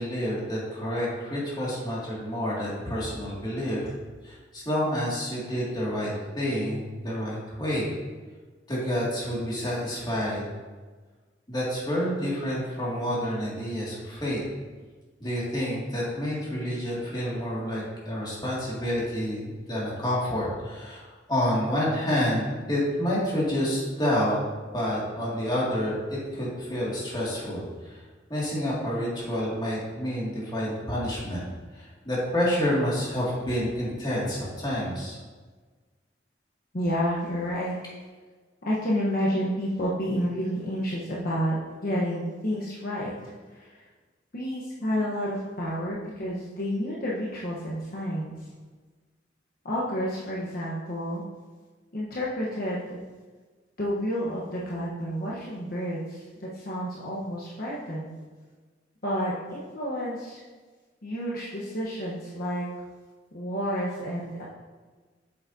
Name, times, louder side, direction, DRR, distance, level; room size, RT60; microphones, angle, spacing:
voice 1, 0.0-3.9 4.2-7.9 8.7-10.5 11.5-14.4 15.2-24.4 24.7-28.0 28.3-31.4 31.7-35.2, equal, 25° left, -6 dB, 2.1 m, -29 dB
voice 2, 36.7-37.7 38.6-41.6 41.8-43.8 44.3-48.3 49.6-51.2 51.9-53.0 53.8-58.1 59.0-60.4 61.0-62.7 63.3-64.4, equal, 55° left, -6 dB, 1.1 m, -30 dB
8.0 x 6.9 x 2.7 m, 1.4 s
head